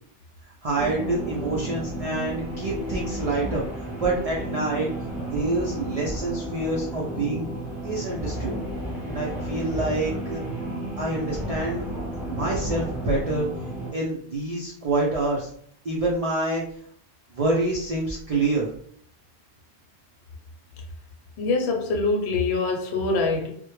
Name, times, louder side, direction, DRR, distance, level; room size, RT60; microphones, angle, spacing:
voice 1, 0.6-4.9 5.3-7.5 7.8-8.6 9.1-10.4 11.0-11.9 12.3-13.5 13.9-15.5 15.8-16.6 17.3-18.7, right 2 dB, 65° right, -3 dB, 0.3 m, -27 dB
sound 1, 0.8-13.9, right 1 dB, ahead, 0.5 m, -32 dB
voice 2, 21.4-23.5, left 3 dB, 70° left, 1 dB, 0.8 m, -24 dB
2.1 x 2.0 x 3.0 m, 0.62 s
omnidirectional pair, 1.2 m